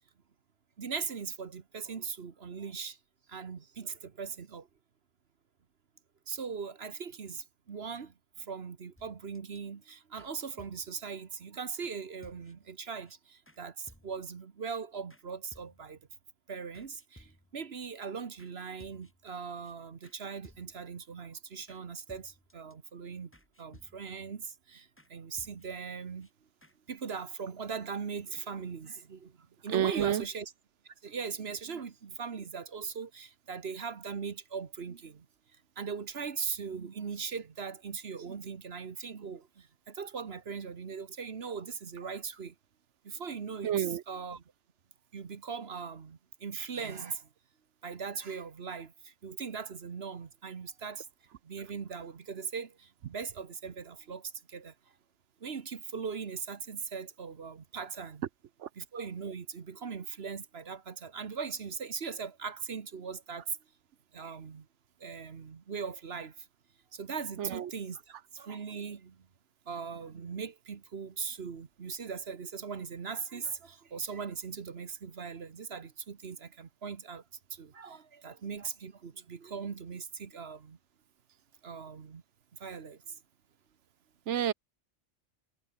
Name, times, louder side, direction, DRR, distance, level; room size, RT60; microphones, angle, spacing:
voice 1, 0.8-3.0 3.3-4.7 6.3-16.0 16.5-23.3 23.6-26.3 26.9-30.5 30.8-35.3 35.5-42.5 43.0-44.4 45.1-47.3 47.8-51.1 51.4-54.7 55.4-58.2 58.7-63.6 64.1-64.7 65.0-66.5 66.9-69.3 69.7-77.2 77.5-80.8 81.6-82.2 82.5-83.2, right 6 dB, 60° right, 1.5 m, -40 dB
sound 1, 9.0-9.6 10.2-11.1 11.8-12.0 12.2-12.8 13.1-13.2 13.5-13.6 13.9-14.4 15.1-15.2 15.5-16.2 16.7-17.7 18.4-18.5 18.8-19.3 19.6-19.7 20.0-20.2 20.4-21.0 21.7-21.8 22.1-22.7 23.3-24.3 25.0-25.1 25.4-25.9 26.2-26.3 26.6-26.8, left 1 dB, 10° left, 3.2 m, -59 dB
voice 2, 29.7-30.2 43.6-44.0 58.6-58.7 67.4-67.7 84.3-84.5, right 10 dB, 80° right, 1.1 m, -29 dB
omnidirectional pair, 1.2 m